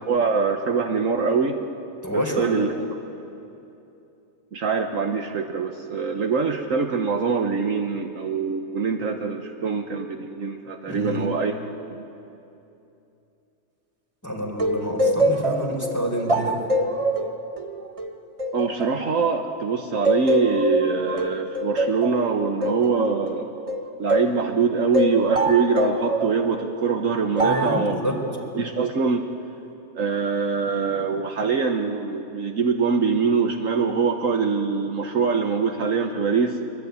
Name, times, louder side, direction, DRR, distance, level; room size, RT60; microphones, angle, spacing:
voice 1, 0.1-1.6 2.1-2.7 4.5-11.5 11.9-12.0 18.5-23.5 24.0-28.0 28.6-29.2 29.9-36.6, right 5 dB, 60° right, 4 dB, 1.5 m, -23 dB
voice 2, 2.0-2.6 10.9-11.3 14.2-16.6 27.4-28.2, equal, 10° left, 0 dB, 4.1 m, -28 dB
sound 1, 14.6-19.6 20.0-24.4 24.9-26.4 27.4-27.8, right 1 dB, 25° right, 1.2 m, -24 dB
23.5 x 23.5 x 9.5 m, 2.8 s
omnidirectional pair, 1.6 m